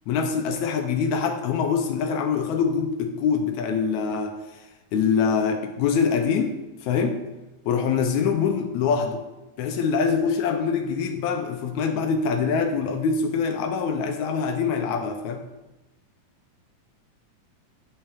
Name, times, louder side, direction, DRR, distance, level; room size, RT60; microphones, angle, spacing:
voice 1, 0.1-4.4 4.9-6.6 6.8-7.2 7.7-9.2 9.6-15.4, left 6 dB, 80° left, 6 dB, 1.7 m, -24 dB
10.0 x 5.6 x 3.4 m, 1.0 s
omnidirectional pair, 3.8 m